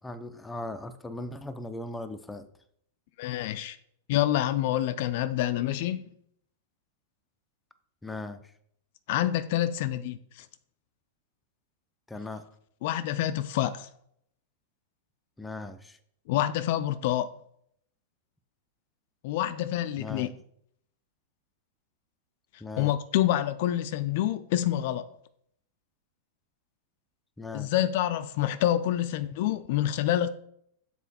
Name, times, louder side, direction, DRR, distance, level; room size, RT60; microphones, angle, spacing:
voice 1, 0.0-2.5 8.0-8.4 12.1-12.5 15.4-16.0 20.0-20.3 22.6-22.9 27.4-27.7, left 2 dB, 10° left, 0.6 m, -38 dB
voice 2, 3.2-3.8 4.1-6.1 9.1-10.5 12.8-13.9 16.3-17.3 19.2-20.3 22.8-25.0 27.5-30.3, left 12 dB, 55° left, 0.5 m, -27 dB
7.0 x 4.1 x 4.3 m
hypercardioid pair, 100°, 0 cm